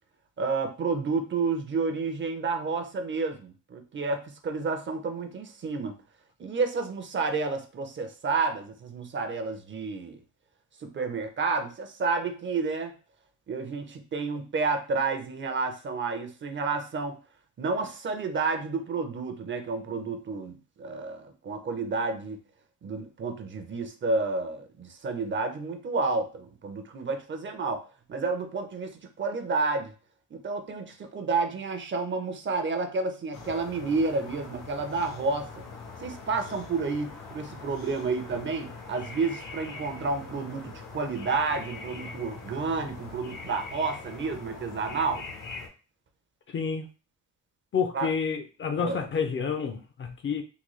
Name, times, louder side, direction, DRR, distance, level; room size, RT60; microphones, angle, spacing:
voice 1, 0.4-5.9 6.4-10.2 10.9-12.9 13.5-17.2 17.6-22.4 22.8-27.8 28.1-28.9 29.2-29.9 30.3-35.5 36.0-45.2 47.9-48.1 48.8-49.0, right 4 dB, 35° right, 6 dB, 0.6 m, -30 dB
sound 1, 33.3-45.7, left 4 dB, 80° left, 1.0 m, -43 dB
voice 2, 46.5-46.9 47.7-50.4, left 6 dB, 40° left, 6 dB, 0.5 m, -29 dB
3.8 x 2.2 x 3.1 m, 0.34 s
cardioid pair, 140°, 32 cm